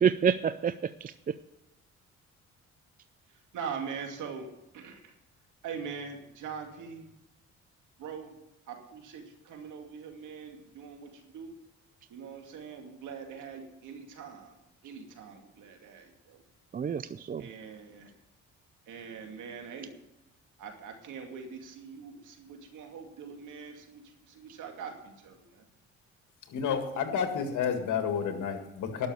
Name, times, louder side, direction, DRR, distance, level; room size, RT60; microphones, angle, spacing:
voice 1, 0.0-1.3 16.7-17.4, right 7 dB, 30° right, 14 dB, 0.4 m, -28 dB
voice 2, 3.3-4.5 4.7-5.1 5.6-7.1 8.0-8.4 8.7-11.5 12.1-14.5 14.8-16.4 17.4-18.1 18.9-19.9 20.6-25.7, right 6 dB, 80° right, 3 dB, 2.4 m, -42 dB
voice 3, 26.5-29.1, left 7 dB, 80° left, 6 dB, 2.0 m, -30 dB
12.0 x 6.5 x 9.2 m, 0.90 s
cardioid pair, 90°, 30 cm